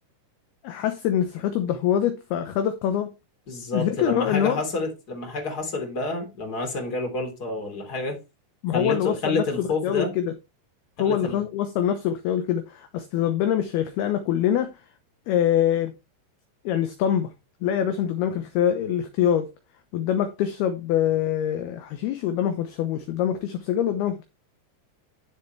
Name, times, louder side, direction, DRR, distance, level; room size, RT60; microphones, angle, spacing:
voice 1, 0.6-3.1 3.7-4.6 8.6-10.3 11.0-14.7 15.3-15.9 16.7-17.3 17.6-19.5 19.9-24.2, left 10 dB, 70° left, 2.6 m, -24 dB
voice 2, 3.5-8.2 8.7-10.1 11.0-11.4, left 3 dB, 25° left, 3.3 m, -29 dB
11.0 x 7.4 x 3.2 m
omnidirectional pair, 5.3 m